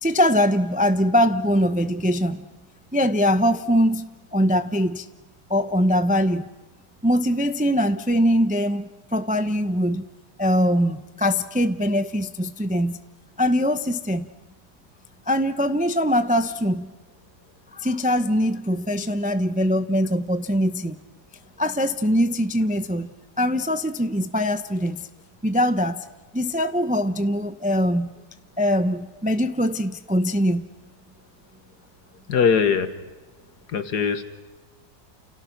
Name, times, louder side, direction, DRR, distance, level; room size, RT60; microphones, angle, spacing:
voice 1, 0.0-2.5 2.9-5.1 5.5-6.5 7.0-10.1 10.4-13.0 13.4-14.3 15.3-16.9 17.7-21.0 21.6-23.1 23.4-25.1 25.4-26.0 26.3-28.1 28.6-30.7, equal, 10° right, 10 dB, 0.6 m, -22 dB
voice 2, 32.3-33.0 33.7-34.2, left 6 dB, 80° left, 10 dB, 2.0 m, -21 dB
30.0 x 29.0 x 6.0 m, 1.2 s
omnidirectional pair, 1.7 m